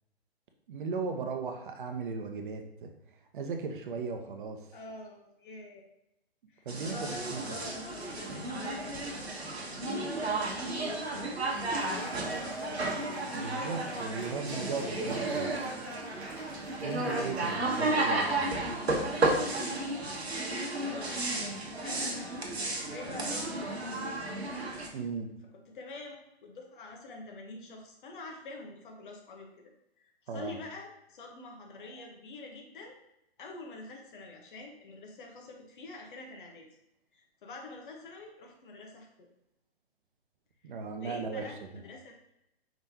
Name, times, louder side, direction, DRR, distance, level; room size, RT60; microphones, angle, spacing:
voice 1, 0.7-2.9 3.3-4.6 6.7-7.4 13.3-15.6 16.8-18.5 24.9-25.3 30.3-30.6 40.6-41.5, right 4 dB, 50° right, 5 dB, 0.7 m, -37 dB
voice 2, 4.7-5.8 6.5-9.0 9.6-11.3 11.8-13.0 17.8-18.3 20.8-21.2 21.8-24.2 25.5-29.5 30.0-33.0 33.4-36.7 37.1-39.3 40.6-40.7 41.0-42.3, left 2 dB, 55° left, 2 dB, 1.1 m, -46 dB
sound 1, 6.7-24.9, right 2 dB, 85° right, 1.0 m, -33 dB
Cheering / Applause, 11.2-18.8, right 1 dB, 5° right, 0.3 m, -46 dB
5.0 x 3.6 x 2.7 m, 0.87 s
figure-of-eight pair, 130°, 31 cm